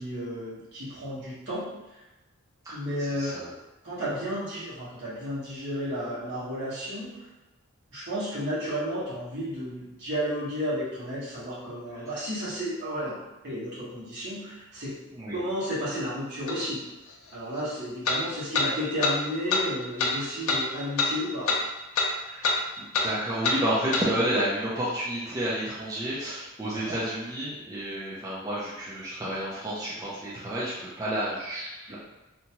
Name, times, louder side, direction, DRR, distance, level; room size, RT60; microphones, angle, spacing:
voice 1, 0.0-1.6 2.7-3.5 3.8-7.1 7.9-13.2 13.4-14.9 15.3-16.8 17.3-21.5 26.7-27.0 31.9-32.0, equal, 55° right, -10 dB, 1.3 m, -32 dB
voice 2, 3.0-3.4 15.1-15.4 22.0-32.0, right 1 dB, 15° right, -9 dB, 0.5 m, -31 dB
sound 1, 16.5-16.6 18.0-18.2 18.5-18.7 19.0-19.1 19.5-19.6 20.0-20.1 20.5-20.6 21.0-21.1 21.5-21.6 21.9-22.1 22.4-22.6 22.9-23.1 23.4-23.6 23.9-24.1, left 3 dB, 85° left, 0.5 m, -24 dB
2.8 x 2.3 x 2.8 m, 1.0 s
head